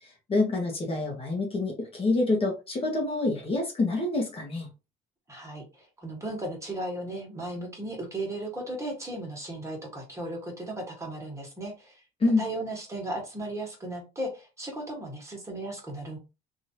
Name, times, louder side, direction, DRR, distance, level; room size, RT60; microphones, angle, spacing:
voice 1, 0.0-4.7 12.2-12.4, left 2 dB, 35° left, 1.0 m, -27 dB
voice 2, 5.3-12.0 12.4-16.2, right 1 dB, 15° right, 1.5 m, -36 dB
3.0 x 2.7 x 2.8 m
cardioid pair, 110°, 17 cm